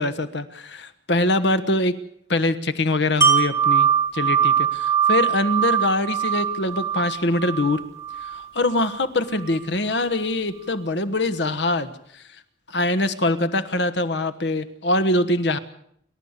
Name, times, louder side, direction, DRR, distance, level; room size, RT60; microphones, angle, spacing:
voice 1, 0.0-1.9 2.3-7.8 8.3-11.9 12.7-15.6, left 2 dB, 75° left, 11 dB, 1.3 m, -23 dB
Wind chime, 3.2-9.0 9.4-9.5, right 8 dB, 15° right, 4.3 m, -22 dB
28.5 x 13.0 x 8.2 m, 0.69 s
head